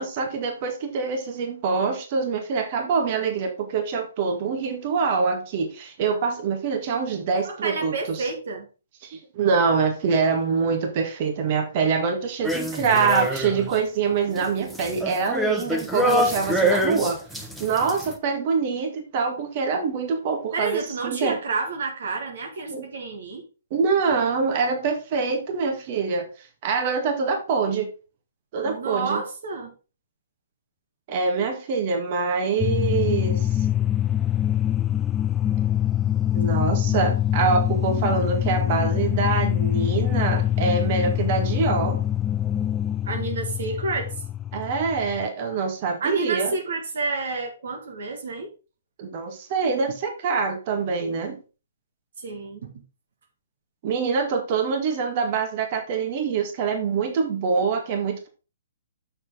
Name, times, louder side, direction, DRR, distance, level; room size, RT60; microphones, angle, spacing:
voice 1, 0.0-8.3 9.0-21.4 22.7-22.8 23.7-26.3 26.6-27.9 28.5-29.2 31.1-33.6 36.3-42.0 44.5-46.5 49.0-51.4 53.8-58.3, right 5 dB, 40° right, 1.8 m, -25 dB
voice 2, 7.4-8.7 20.5-23.4 28.6-29.7 43.0-44.1 46.0-48.5 52.2-52.7, right 3 dB, 65° right, 1.7 m, -30 dB
sound 1, 12.4-13.8 14.1-18.1, equal, 5° right, 1.1 m, -25 dB
sound 2, 32.6-45.3, left 11 dB, 15° left, 0.4 m, -24 dB
7.2 x 6.4 x 3.8 m
figure-of-eight pair, 130°, 0 cm